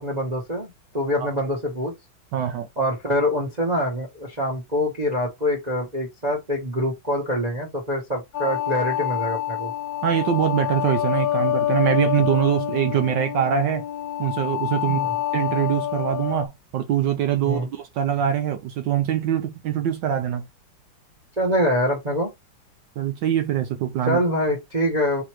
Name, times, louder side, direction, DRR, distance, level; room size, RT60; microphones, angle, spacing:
voice 1, 0.0-1.9 2.8-9.7 14.9-15.1 17.4-17.7 21.4-22.3 24.1-25.2, equal, 25° right, 1.0 m, -25 dB
voice 2, 2.3-2.7 10.0-13.8 14.2-15.0 15.3-20.5 23.0-24.2, right 10 dB, 70° right, 1.3 m, -23 dB
sound 1, 8.3-16.5, left 12 dB, 80° left, 0.8 m, -26 dB
3.9 x 3.0 x 4.4 m
omnidirectional pair, 2.1 m